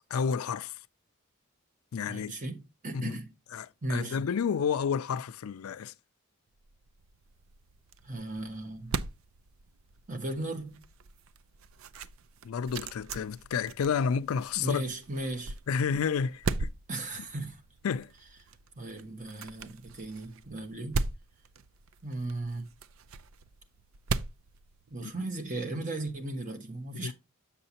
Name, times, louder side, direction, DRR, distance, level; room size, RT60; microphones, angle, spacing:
voice 1, 0.1-0.8 1.9-2.3 2.9-3.1 3.5-5.9 12.4-14.8 15.7-16.7 17.8-18.1 25.0-25.3 26.9-27.1, left 6 dB, 90° left, 0.4 m, -30 dB
voice 2, 2.1-3.3 3.8-4.2 8.0-9.0 10.1-10.8 14.6-15.6 16.9-17.6 18.8-21.0 22.0-22.7 24.9-27.1, right 2 dB, 40° right, 1.1 m, -36 dB
sound 1, 6.6-25.4, right 4 dB, 75° right, 0.5 m, -40 dB
7.0 x 6.6 x 2.8 m
head